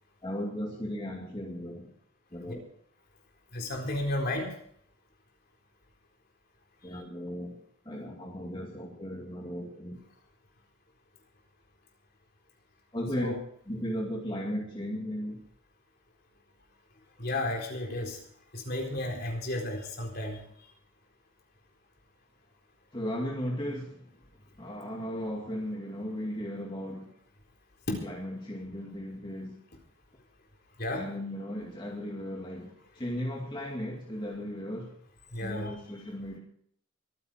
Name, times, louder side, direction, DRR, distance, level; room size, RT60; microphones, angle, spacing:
voice 1, 0.2-1.9 2.3-2.6 6.8-7.6 7.9-10.0 12.9-13.3 13.7-15.4 22.9-24.0 24.6-27.1 28.0-29.6 30.9-34.9 35.4-36.4, equal, 25° left, -1 dB, 2.3 m, -36 dB
voice 2, 3.5-4.5 13.2-13.3 17.2-18.2 18.5-20.4 27.9-28.0 30.8-31.0 35.3-35.7, left 1 dB, 50° left, 1 dB, 4.0 m, -32 dB
23.5 x 9.9 x 4.5 m, 0.63 s
head